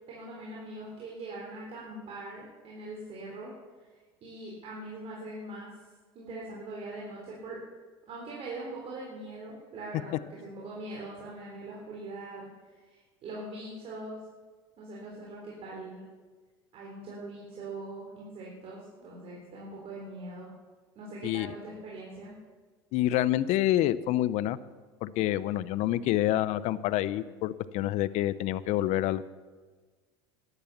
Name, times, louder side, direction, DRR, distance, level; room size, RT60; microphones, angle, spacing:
voice 1, 0.1-3.5 4.2-5.7 6.1-7.7 8.1-14.2 14.8-16.0 16.7-20.5 21.0-22.3, right 2 dB, 50° right, -4 dB, 3.8 m, -42 dB
voice 2, 21.2-21.5 22.9-24.6 25.0-29.3, left 14 dB, 60° left, 17 dB, 0.7 m, -27 dB
12.0 x 11.5 x 7.2 m, 1.4 s
hypercardioid pair, 80°, 13 cm